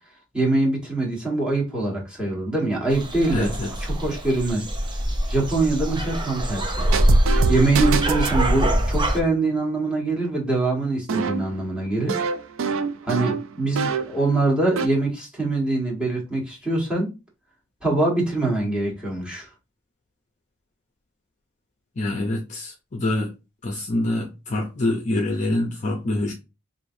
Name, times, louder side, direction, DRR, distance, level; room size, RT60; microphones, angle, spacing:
voice 1, 0.3-3.5 3.8-4.6 5.3-6.9 7.3-12.2 13.0-17.1 17.8-19.5, right 2 dB, 5° right, 1.4 m, -24 dB
sound 1, 2.9-9.2, equal, 20° right, 0.6 m, -23 dB
voice 2, 3.3-3.7 22.0-23.3 23.6-26.3, left 1 dB, 35° left, 0.6 m, -25 dB
sound 2, 6.9-8.4 11.1-14.2 14.5-14.9, right 5 dB, 65° right, 0.4 m, -26 dB
4.8 x 2.7 x 2.6 m
head